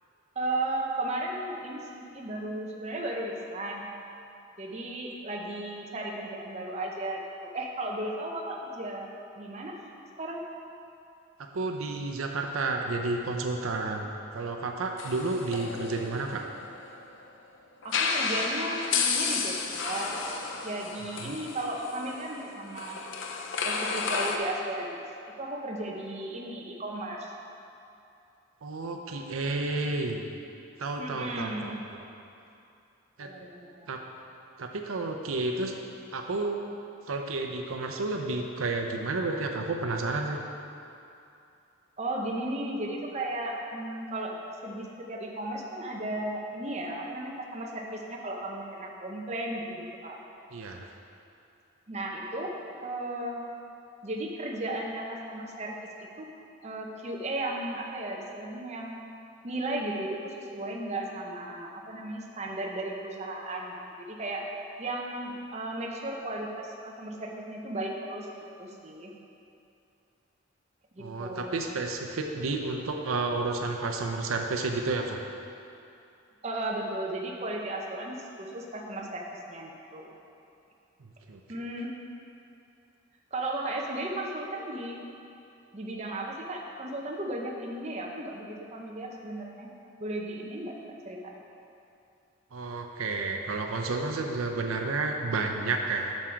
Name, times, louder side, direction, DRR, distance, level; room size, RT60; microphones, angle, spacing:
voice 1, 0.4-3.9 4.6-9.1 9.4-9.8 10.2-10.4 15.6-16.4 17.8-20.2 20.6-23.0 23.6-25.0 25.4-27.3 31.0-31.9 33.2-33.8 42.0-44.4 44.6-50.2 51.9-52.5 52.8-53.5 54.0-55.8 56.2-56.3 56.6-59.0 59.4-64.5 64.8-68.3 68.6-69.1 70.9-71.6 76.4-80.2 81.5-81.9 83.3-85.0 85.7-89.7 90.0-90.8 91.0-91.4, right 1 dB, 35° right, -1 dB, 0.7 m, -35 dB
voice 2, 11.5-16.4 21.2-21.4 28.6-30.2 30.8-32.0 33.2-33.3 33.9-34.0 34.6-35.7 36.1-36.6 37.1-40.4 50.5-50.9 71.0-75.2 81.0-81.6 92.5-96.3, right 3 dB, 85° right, 3 dB, 0.6 m, -31 dB
sound 1, 15.0-17.0 17.8-24.4, left 5 dB, 60° left, 0.6 m, -32 dB
7.5 x 6.3 x 4.5 m, 2.7 s
head